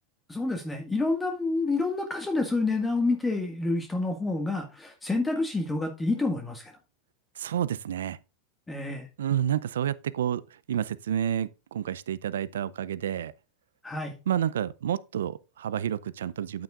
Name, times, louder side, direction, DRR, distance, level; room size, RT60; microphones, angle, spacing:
voice 1, 0.3-6.7 8.7-9.1 13.8-14.2, left 3 dB, 15° left, 1.7 m, -28 dB
voice 2, 7.4-8.2 9.2-13.3 14.3-16.6, right 10 dB, 75° right, 0.4 m, -29 dB
9.6 x 9.0 x 2.4 m
hypercardioid pair, 90°, 0 cm